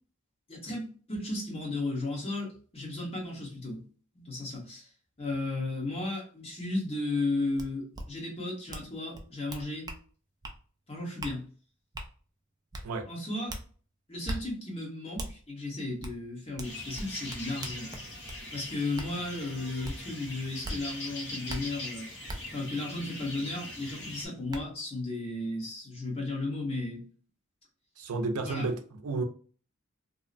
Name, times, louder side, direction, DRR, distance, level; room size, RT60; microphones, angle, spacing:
voice 1, 0.5-3.8 4.1-4.9 5.2-9.9 10.9-11.4 13.1-13.5 14.1-17.9 18.5-22.1 22.5-27.0 28.4-28.7, left 2 dB, 25° left, 1.1 m, -34 dB
sound 1, 7.6-7.7 7.9-8.0 8.7-8.9 9.1-10.0 10.4-10.6 11.2-11.3 11.9-12.1 12.7-12.8 13.5-13.6 14.2-14.4 15.2-15.3 16.0-16.1 16.6-18.4 19.0-19.1 19.8-20.0 20.6-20.8 21.5-21.6 22.3-22.4 23.9-24.0 24.5-24.6, right 1 dB, 20° right, 0.3 m, -38 dB
sound 2, 16.6-24.3, left 1 dB, 55° left, 1.3 m, -42 dB
voice 2, 28.0-29.2, right 3 dB, 85° right, 0.5 m, -32 dB
2.7 x 2.1 x 2.5 m
head